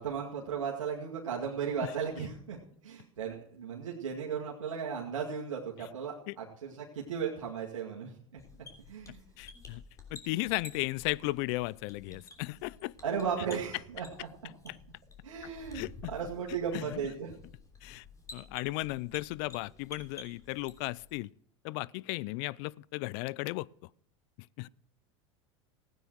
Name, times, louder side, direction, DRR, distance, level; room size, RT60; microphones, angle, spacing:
voice 1, 0.0-2.6 2.8-8.4 8.9-9.2 12.1-12.2 13.0-14.3 15.2-15.8 16.1-17.3, right 7 dB, 85° right, 2.2 m, -36 dB
sound 1, 8.4-21.1, left 4 dB, 20° left, 3.2 m, -52 dB
voice 2, 9.4-9.8 10.1-12.9 15.7-15.9 16.7-17.0 17.8-18.0 18.3-21.3 21.6-23.7 24.6-24.7, left 21 dB, 55° left, 0.5 m, -35 dB
16.0 x 9.4 x 4.7 m
hypercardioid pair, 95°, 16 cm